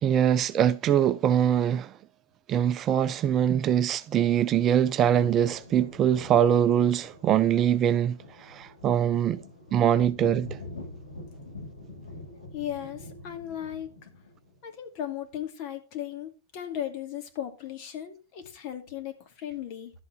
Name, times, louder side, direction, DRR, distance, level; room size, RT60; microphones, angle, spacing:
voice 1, 0.0-1.9 2.5-9.4 9.7-10.6, right 9 dB, 30° right, 0.5 m, -23 dB
sound 1, 4.4-14.5, left 2 dB, 75° left, 7.5 m, -45 dB
voice 2, 12.5-13.9 14.6-19.9, left 10 dB, 45° left, 2.4 m, -36 dB
12.0 x 8.0 x 4.6 m
figure-of-eight pair, 90°, 0 cm